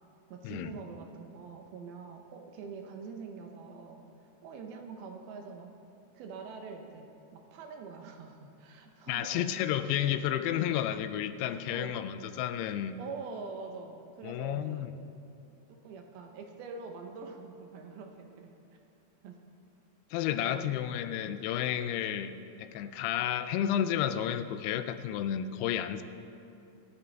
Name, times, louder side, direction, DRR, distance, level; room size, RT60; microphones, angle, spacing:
voice 1, 0.3-5.8 6.1-9.5 11.5-12.0 13.0-14.9 15.7-18.8 19.2-19.4 20.3-20.7, right 5 dB, 75° right, 3 dB, 2.7 m, -45 dB
voice 2, 9.1-13.0 14.2-14.9 20.1-26.0, left 10 dB, 85° left, 11 dB, 2.6 m, -31 dB
24.0 x 10.0 x 3.4 m, 2.7 s
omnidirectional pair, 4.7 m